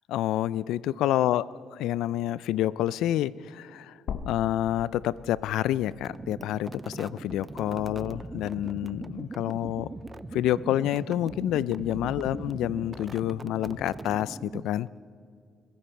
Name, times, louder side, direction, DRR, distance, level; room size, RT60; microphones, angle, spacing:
voice 1, 0.1-1.4 1.7-4.0 4.3-9.9 10.3-14.9, left 13 dB, 85° left, 19 dB, 0.3 m, -28 dB
sound 1, 4.1-8.2 8.6-8.7 10.1-10.2, left 6 dB, 65° left, 0.9 m, -42 dB
sound 2, 5.9-14.9, right 3 dB, 20° right, 0.4 m, -41 dB
sound 3, 7.0-13.9, left 2 dB, 5° left, 1.7 m, -49 dB
22.0 x 14.5 x 4.4 m, 2.4 s
cardioid pair, 120°, 0 cm